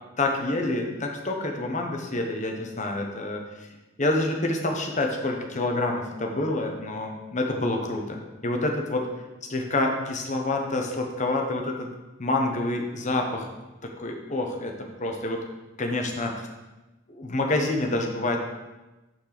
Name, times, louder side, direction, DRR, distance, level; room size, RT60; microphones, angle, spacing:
voice 1, 0.2-3.7 4.0-8.2 8.4-9.1 9.5-11.9 12.2-13.5 13.8-14.7 15.0-15.4 15.8-16.5 17.1-18.4, left 2 dB, 35° left, 2 dB, 1.1 m, -27 dB
8.9 x 4.5 x 5.9 m, 1.1 s
head